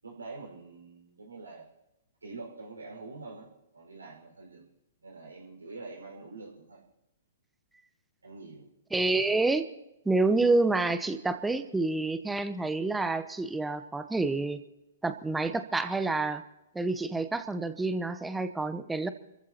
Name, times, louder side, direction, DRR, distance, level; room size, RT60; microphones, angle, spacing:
voice 1, 0.0-1.7 2.2-4.7 5.0-6.8 8.2-8.7, right 3 dB, 80° right, 0 dB, 5.3 m, -45 dB
voice 2, 8.9-9.7 10.0-14.6 15.0-16.4 16.7-19.1, right 3 dB, 5° right, 10 dB, 0.9 m, -28 dB
28.5 x 14.5 x 3.0 m, 0.92 s
figure-of-eight pair, 120°, 0 cm